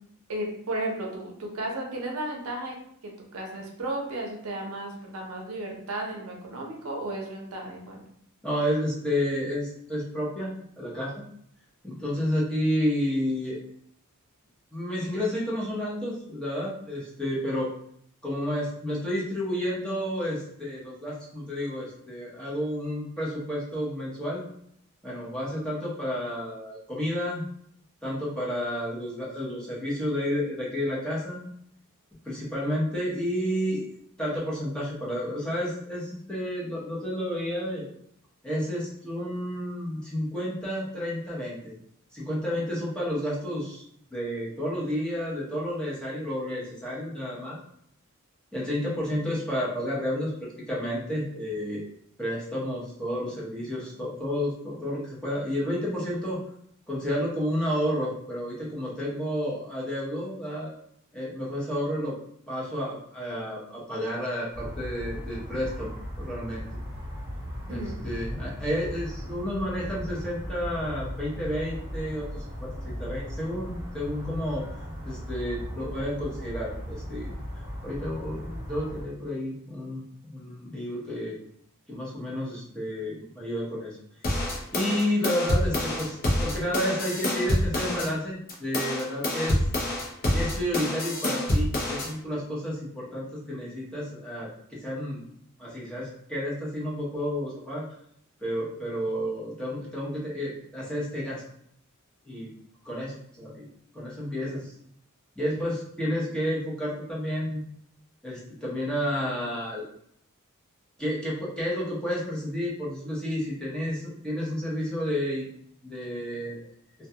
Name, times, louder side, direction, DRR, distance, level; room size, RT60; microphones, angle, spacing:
voice 1, 0.3-2.8 3.0-8.0 67.7-68.0, right 1 dB, 75° right, 0 dB, 0.6 m, -34 dB
voice 2, 8.4-11.3 11.8-13.6 14.7-17.7 18.2-24.5 25.0-27.4 28.0-31.4 32.2-33.8 34.2-37.9 38.4-41.7 42.1-43.8 44.1-47.6 48.5-51.8 52.2-56.4 56.9-60.7 61.1-62.1 62.5-65.9 66.2-66.6 67.7-74.7 75.0-77.3 77.8-81.4 81.9-84.0 84.7-89.6 90.3-95.2 95.6-97.8 98.4-101.4 102.2-102.5 102.8-103.7 103.9-104.7 105.4-107.6 108.2-109.8 111.0-115.5 115.8-116.6, equal, 5° left, -7 dB, 0.7 m, -31 dB
sound 1, 64.5-79.0, equal, 20° right, 1.0 m, -37 dB
sound 2, 84.2-88.1 88.5-92.1, left 1 dB, 45° left, 0.6 m, -27 dB
2.3 x 2.2 x 2.7 m, 0.69 s
head